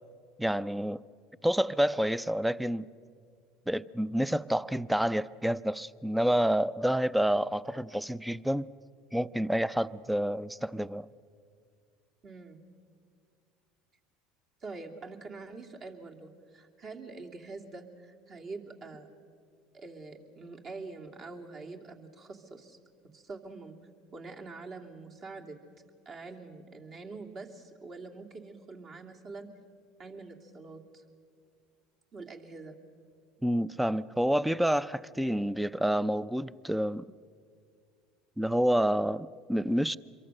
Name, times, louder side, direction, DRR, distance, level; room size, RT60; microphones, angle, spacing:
voice 1, 0.4-1.0 1.4-2.8 3.7-8.7 9.1-11.1 33.4-37.0 38.4-40.0, equal, 5° right, 0.5 m, -28 dB
voice 2, 12.2-12.6 14.6-19.1 19.7-22.8 23.1-23.8 24.1-25.6 26.0-29.5 30.0-31.0 32.1-32.8, right 3 dB, 45° right, 2.8 m, -45 dB
26.0 x 23.0 x 6.6 m
hypercardioid pair, 80°, 0 cm